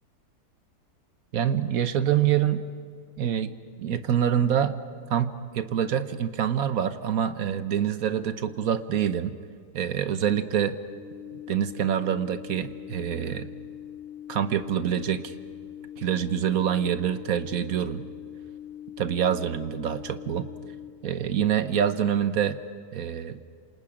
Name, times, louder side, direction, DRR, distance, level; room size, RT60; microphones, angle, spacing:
voice 1, 1.3-2.6 3.2-3.5 3.8-4.7 5.1-9.4 9.7-10.8 11.5-13.5 14.3-15.3 16.0-18.0 19.0-20.5 21.0-22.6 22.9-23.4, right 9 dB, 65° right, 11 dB, 1.3 m, -26 dB
sound 1, 10.9-20.9, left 10 dB, 35° left, 6.4 m, -42 dB
28.0 x 26.5 x 5.0 m, 2.2 s
omnidirectional pair, 1.7 m